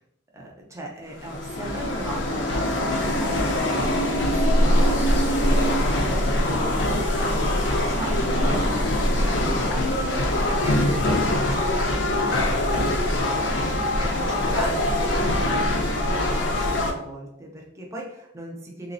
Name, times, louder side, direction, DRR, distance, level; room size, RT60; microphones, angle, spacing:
voice 1, 0.3-6.7 7.0-18.9, right 1 dB, 15° right, -1 dB, 0.5 m, -38 dB
sound 1, 1.1-16.9, left 1 dB, 75° left, 0.5 m, -23 dB
3.3 x 2.0 x 2.5 m, 0.84 s
head